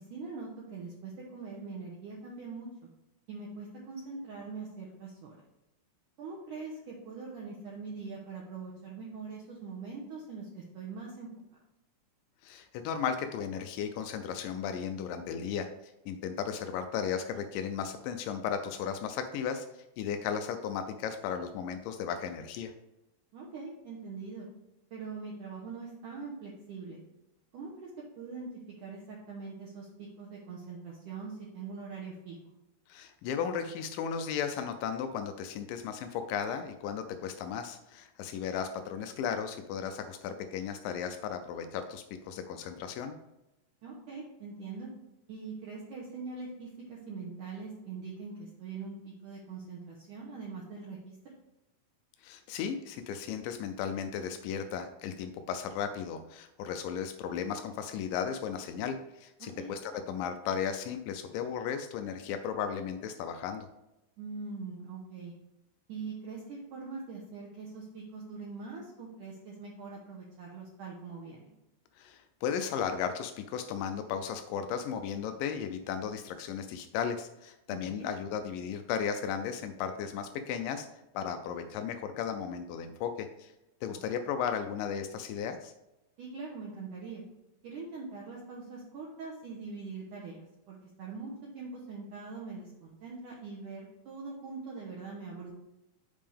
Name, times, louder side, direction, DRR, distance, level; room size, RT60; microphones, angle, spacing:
voice 1, 0.0-2.9 3.3-5.4 6.2-11.3 23.3-24.5 24.9-27.0 27.5-27.9 28.2-28.5 28.8-32.5 43.8-44.9 45.3-51.1 59.4-59.7 64.2-65.3 65.9-71.5 77.7-78.1 86.2-87.2 87.6-95.5, right 4 dB, 70° right, -3 dB, 2.2 m, -43 dB
voice 2, 12.4-22.7 32.9-43.2 52.2-63.7 72.0-80.9 81.1-83.5 83.8-85.7, left 7 dB, 90° left, 7 dB, 1.9 m, -35 dB
7.7 x 5.3 x 3.4 m, 0.92 s
omnidirectional pair, 4.5 m